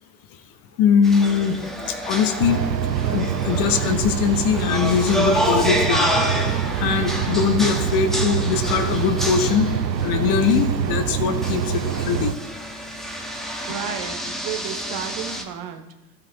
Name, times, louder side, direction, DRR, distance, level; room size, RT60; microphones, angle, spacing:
voice 1, 0.8-1.6 1.9-2.6 3.0-6.1 6.8-9.7 10.0-12.3, left 7 dB, 45° left, 8 dB, 1.2 m, -21 dB
sound 1, 1.0-15.4, equal, ahead, 1.3 m, -29 dB
sound 2, 2.4-12.3, right 8 dB, 90° right, 0.7 m, -25 dB
voice 2, 13.7-15.8, right 8 dB, 45° right, 6 dB, 1.3 m, -32 dB
15.0 x 5.7 x 4.0 m, 1.1 s
hypercardioid pair, 85°, 50 cm